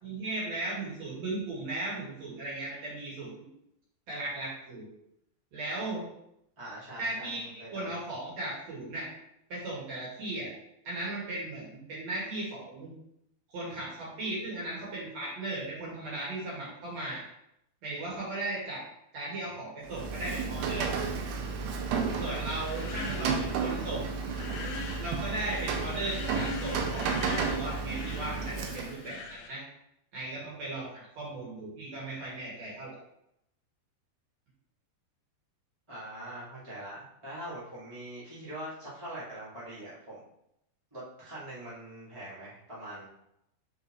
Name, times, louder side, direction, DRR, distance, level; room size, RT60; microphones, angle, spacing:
voice 1, 0.0-3.3 4.1-4.9 5.5-6.0 7.0-9.1 9.5-10.5 10.8-12.9 13.5-17.2 17.8-18.8 19.1-21.1 22.2-24.0 25.0-29.6 30.1-30.9 31.1-33.0, right 2 dB, 45° right, -7 dB, 3.0 m, -37 dB
voice 2, 6.6-7.9 22.8-23.4 35.9-40.2 40.9-43.1, right 1 dB, 15° right, -10 dB, 0.9 m, -43 dB
Rain, 19.8-29.1, right 5 dB, 80° right, 2.4 m, -32 dB
sound 1, 22.0-29.5, left 5 dB, 85° left, 2.1 m, -43 dB
9.0 x 4.5 x 3.2 m, 0.81 s
omnidirectional pair, 5.2 m